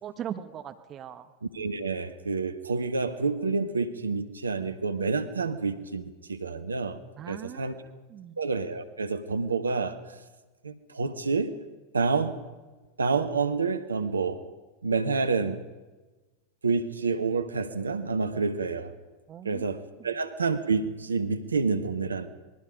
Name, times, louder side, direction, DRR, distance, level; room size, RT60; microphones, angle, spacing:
voice 1, 0.0-1.3 7.2-8.4 19.3-19.6, right 9 dB, 30° right, 8 dB, 1.4 m, -40 dB
voice 2, 1.5-7.0 7.3-7.7 8.4-10.0 10.6-11.5 11.9-12.3 13.0-14.4 14.8-15.6 16.6-18.9 19.4-22.3, right 4 dB, 75° right, 10 dB, 1.4 m, -28 dB
26.5 x 21.5 x 5.3 m, 1.2 s
figure-of-eight pair, 90°, 0 cm